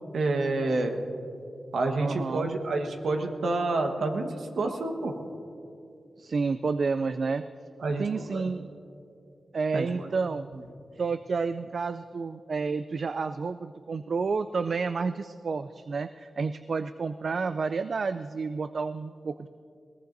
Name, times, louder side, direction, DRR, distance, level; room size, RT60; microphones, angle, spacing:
voice 1, 0.1-1.0 1.7-5.1 7.8-8.4 9.7-10.1, right 2 dB, 90° right, 4 dB, 1.3 m, -28 dB
voice 2, 2.0-2.5 6.2-7.4 8.0-8.7 9.5-10.5 11.0-19.5, right 4 dB, 65° right, 12 dB, 0.3 m, -30 dB
21.0 x 18.0 x 2.6 m, 2.6 s
cardioid pair, 70°, 0 cm